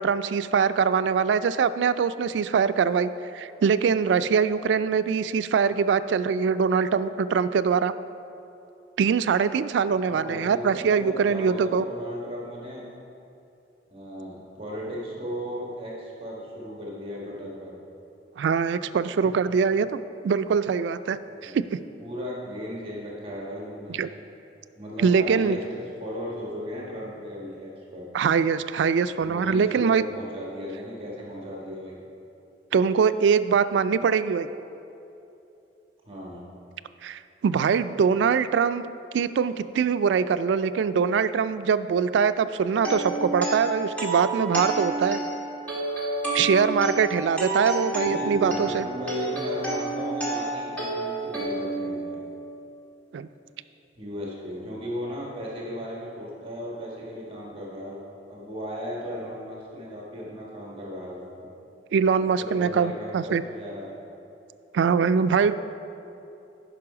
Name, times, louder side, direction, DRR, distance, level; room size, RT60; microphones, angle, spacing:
voice 1, 0.0-7.9 9.0-11.8 18.4-21.2 21.4-21.8 23.9-24.1 25.0-25.6 28.1-30.0 32.7-34.5 37.0-38.8 39.1-45.2 46.3-48.9 53.1-53.3 61.9-63.4 64.7-65.5, right 6 dB, 85° right, 13 dB, 0.3 m, -23 dB
voice 2, 10.0-12.8 13.9-17.8 19.2-19.3 21.3-21.5 22.0-24.0 24.7-28.1 29.2-32.0 36.1-36.4 48.0-52.2 54.0-58.0 58.3-61.5 62.4-63.9, equal, 30° right, -4 dB, 1.3 m, -36 dB
sound 1, 42.7-52.7, right 2 dB, 10° left, 1.7 m, -30 dB
11.0 x 5.5 x 4.8 m, 2.8 s
head